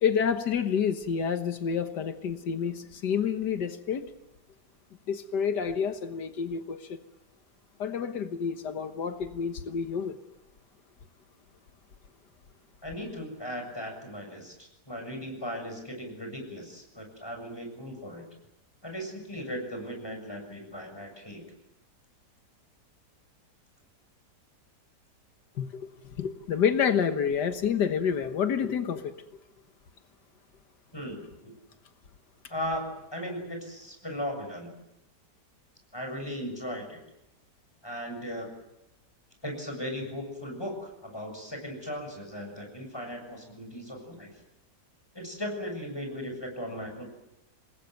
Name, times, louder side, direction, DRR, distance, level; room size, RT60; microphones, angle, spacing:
voice 1, 0.0-4.1 5.1-7.0 7.8-10.2 25.6-25.9 26.2-29.1, left 7 dB, 90° left, 8 dB, 1.9 m, -28 dB
voice 2, 12.8-18.3 18.8-21.4 30.9-31.5 32.5-34.7 35.9-37.0 37.8-38.5 39.4-44.3 45.1-47.0, equal, 15° left, 3 dB, 7.2 m, -37 dB
26.5 x 21.0 x 9.3 m, 0.89 s
omnidirectional pair, 1.8 m